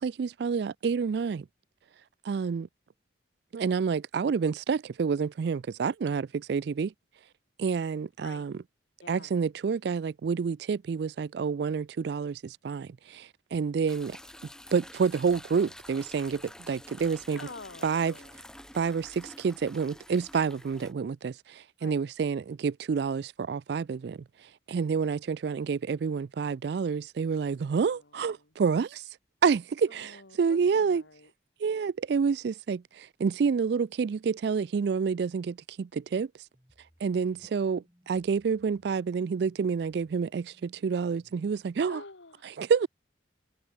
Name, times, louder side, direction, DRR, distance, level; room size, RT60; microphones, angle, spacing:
voice 1, 0.0-1.5 2.2-2.7 3.5-6.9 7.6-8.5 9.1-14.2 14.7-17.4 17.8-18.1 18.7-24.2 24.7-29.0 29.4-31.0 31.6-36.3 37.0-42.0 42.6-42.9, right 5 dB, 60° right, 0.3 m, -28 dB
voice 2, 9.0-9.3 17.3-18.4 21.8-22.1 27.7-28.5 29.9-31.3 37.1-37.5 41.9-42.6, left 3 dB, 75° left, 2.0 m, -49 dB
sound 1, 13.9-20.9, left 1 dB, 5° left, 1.4 m, -49 dB
sound 2, 36.5-41.5, equal, 15° right, 4.9 m, -64 dB
open air
head